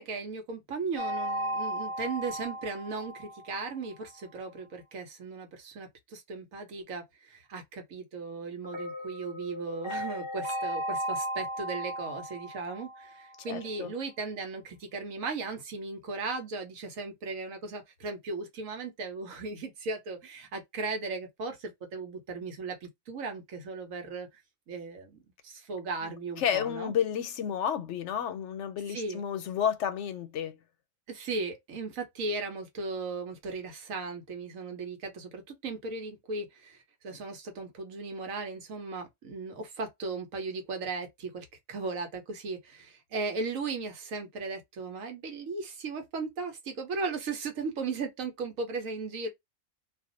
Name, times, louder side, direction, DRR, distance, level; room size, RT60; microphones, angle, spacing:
voice 1, 0.0-24.3 24.7-26.9 28.9-29.2 31.1-49.3, right 4 dB, 80° right, 1.3 m, -37 dB
sound 1, 1.0-3.9 8.6-13.6, equal, 40° left, 0.4 m, -36 dB
voice 2, 13.5-13.9 26.0-26.1 26.4-30.6, left 9 dB, 70° left, 0.8 m, -31 dB
2.6 x 2.4 x 3.8 m
omnidirectional pair, 1.4 m